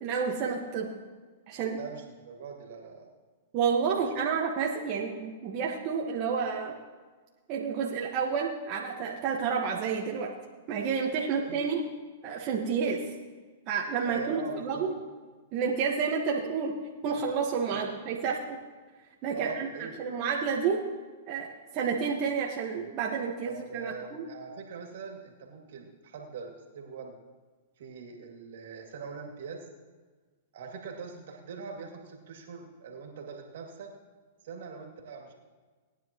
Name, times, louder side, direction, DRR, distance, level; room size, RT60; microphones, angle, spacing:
voice 1, 0.0-0.9 1.5-1.8 3.5-6.7 7.5-10.3 10.7-11.8 12.2-13.0 13.7-14.9 15.5-16.7 17.0-18.4 19.2-20.8 21.3-21.5 21.7-24.2, right 6 dB, 40° right, -2 dB, 1.5 m, -30 dB
voice 2, 1.7-3.0 11.5-11.6 14.0-14.9 17.7-17.8 19.3-20.1 23.5-27.2 27.8-29.7 30.5-33.9 34.4-35.3, right 5 dB, 70° right, 1 dB, 2.5 m, -42 dB
19.5 x 10.0 x 3.1 m, 1.4 s
hypercardioid pair, 125°, 0 cm